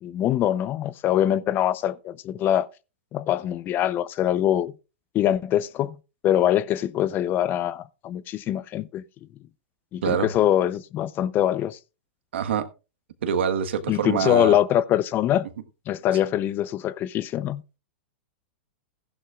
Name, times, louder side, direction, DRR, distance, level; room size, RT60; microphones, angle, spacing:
voice 1, 0.0-2.7 3.1-4.7 5.1-6.0 6.2-9.0 9.9-11.8 13.9-15.5 15.9-17.8, left 11 dB, 35° left, 0.6 m, -23 dB
voice 2, 12.3-12.6 13.2-14.6, right 7 dB, 75° right, 1.4 m, -25 dB
15.5 x 11.0 x 2.4 m
hypercardioid pair, 120°, 6 cm